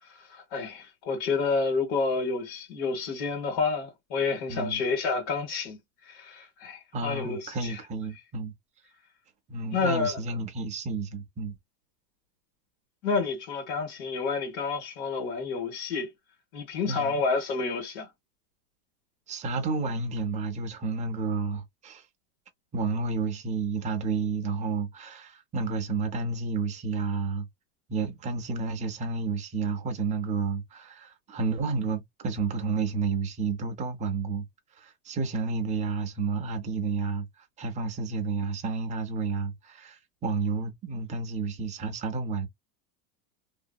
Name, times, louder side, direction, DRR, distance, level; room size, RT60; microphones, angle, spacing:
voice 1, 0.1-5.8 6.0-7.8 9.7-10.2 13.0-16.1 16.5-18.1, left 4 dB, 60° left, 1.6 m, -29 dB
voice 2, 4.5-4.8 6.9-8.5 9.5-11.5 16.9-17.1 19.3-22.0 22.7-27.5 27.9-34.5 34.8-42.5, right 4 dB, 15° right, 0.4 m, -31 dB
2.8 x 2.6 x 2.2 m
supercardioid pair, 145°, 49 cm